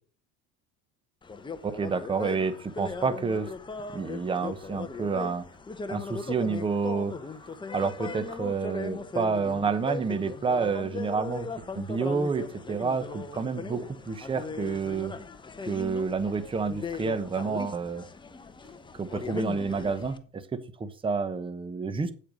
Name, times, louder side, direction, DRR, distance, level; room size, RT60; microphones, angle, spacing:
sound 1, 1.2-20.2, left 4 dB, 15° left, 0.9 m, -38 dB
voice 1, 1.6-3.5 3.9-5.5 5.9-7.2 7.7-15.1 15.6-18.0 18.9-22.1, right 5 dB, 15° right, 11 dB, 0.9 m, -29 dB
8.7 x 7.9 x 5.2 m, 0.38 s
cardioid pair, 135°, 32 cm